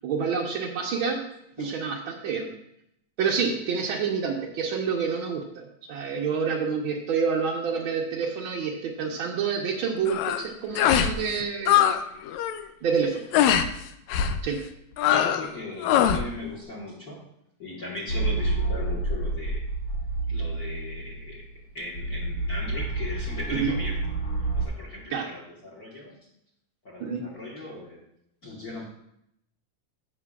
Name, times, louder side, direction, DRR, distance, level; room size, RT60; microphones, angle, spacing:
voice 1, 0.0-1.2 1.6-2.5 3.2-11.9 12.8-13.2 14.4-14.6 23.5-23.7 25.1-25.3 27.0-27.2, right 6 dB, 70° right, -1 dB, 1.2 m, -28 dB
sound 1, 10.1-10.4 10.7-11.1 11.4-12.0 12.3-12.6 13.3-13.7 14.1-14.4 15.0-15.5 15.8-16.2, left 10 dB, 80° left, 1.8 m, -22 dB
voice 2, 15.1-17.3 17.6-19.6 20.3-21.5 21.7-24.0 24.5-26.2 26.8-28.0 28.4-28.8, left 2 dB, 40° left, -3 dB, 1.4 m, -38 dB
sound 2, 18.1-24.6, right 2 dB, 60° left, 3.2 m, -29 dB
15.0 x 5.9 x 2.4 m, 0.77 s
omnidirectional pair, 3.4 m